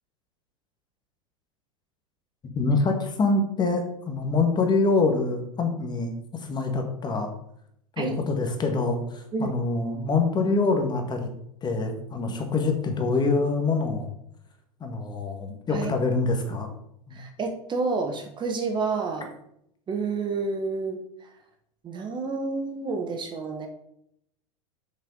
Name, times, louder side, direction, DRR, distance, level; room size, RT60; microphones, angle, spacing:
voice 1, 2.5-7.3 8.0-11.3 11.6-14.1 14.8-16.7 17.1-17.2, left 3 dB, 25° left, 4 dB, 1.7 m, -25 dB
voice 2, 17.1-19.3 19.9-21.0 21.8-23.7, right 4 dB, 25° right, 4 dB, 1.4 m, -29 dB
6.7 x 6.1 x 5.5 m, 0.74 s
hypercardioid pair, 95°, 18 cm